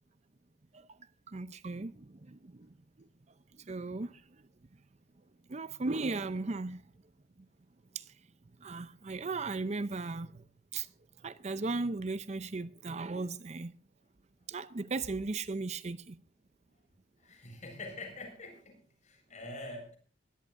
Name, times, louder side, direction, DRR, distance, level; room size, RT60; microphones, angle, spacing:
voice 1, 1.3-2.7 3.0-3.1 3.7-4.2 5.5-6.8 7.9-8.0 8.6-10.4 10.7-10.9 11.2-13.7 14.5-16.2, right 3 dB, 40° right, 0.6 m, -36 dB
voice 2, 17.2-20.0, left 2 dB, 40° left, 7.7 m, -45 dB
23.0 x 17.0 x 2.6 m
head